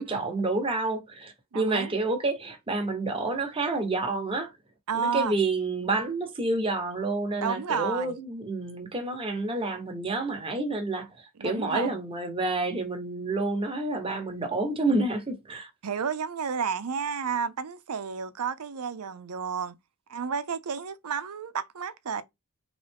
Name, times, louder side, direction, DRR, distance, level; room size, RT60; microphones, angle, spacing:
voice 1, 0.0-4.5 5.0-11.1 11.4-15.7, right 2 dB, 25° right, 1.0 m, -29 dB
voice 2, 1.5-1.9 4.9-5.4 7.4-8.2 11.3-12.0 15.8-19.8 20.1-22.2, right 6 dB, 85° right, 0.6 m, -31 dB
3.7 x 3.1 x 3.4 m
head